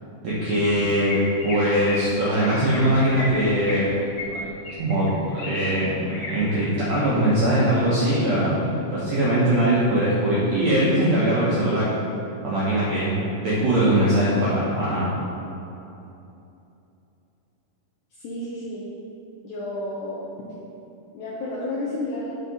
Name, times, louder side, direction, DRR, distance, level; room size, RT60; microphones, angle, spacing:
voice 1, 0.2-4.0 4.3-4.5 4.8-5.1 5.4-11.8 12.4-13.1 13.4-15.1, right 1 dB, 75° right, -8 dB, 1.6 m, -21 dB
Chirp tweet, 1.1-1.6 1.9-2.1 2.4-2.8 3.1-3.8 4.2-5.5 5.8-6.3 6.7-7.0 7.4-7.8, left 2 dB, 55° left, 2.2 m, -35 dB
voice 2, 18.1-18.9 19.4-20.3 21.1-22.4, left 1 dB, 80° left, -6 dB, 1.7 m, -31 dB
8.2 x 4.7 x 4.0 m, 2.9 s
omnidirectional pair, 4.3 m